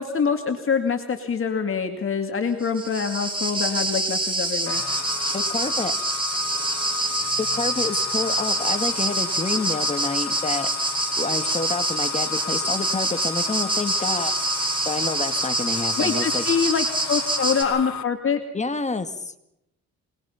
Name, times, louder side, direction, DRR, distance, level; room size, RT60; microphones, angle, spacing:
voice 1, 0.0-4.8 16.0-18.4, left 6 dB, 45° left, 5 dB, 2.2 m, -25 dB
sound 1, 2.6-17.6, right 2 dB, 15° right, 5.2 m, -26 dB
sound 2, 4.7-18.0, left 8 dB, 70° left, 1.5 m, -35 dB
voice 2, 5.3-5.9 7.4-10.7 11.2-14.3 14.6-16.5 18.5-19.3, left 3 dB, 25° left, 9 dB, 2.0 m, -28 dB
25.5 x 20.5 x 5.8 m, 0.82 s
cardioid pair, 90°, 30 cm